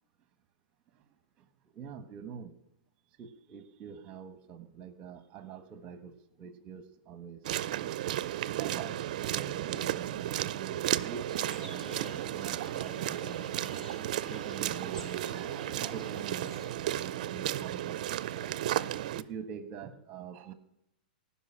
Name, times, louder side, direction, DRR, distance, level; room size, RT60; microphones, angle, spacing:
voice 1, 1.4-2.5 3.2-8.1 8.6-11.3 11.6-14.0 14.3-18.6 19.1-20.5, right 7 dB, 25° right, 11 dB, 1.3 m, -46 dB
sound 1, 7.4-19.2, right 13 dB, 55° right, 0.5 m, -34 dB
sound 2, 11.3-16.7, right 1 dB, 5° left, 1.6 m, -48 dB
17.0 x 5.9 x 10.0 m, 0.84 s
hypercardioid pair, 155°, 5 cm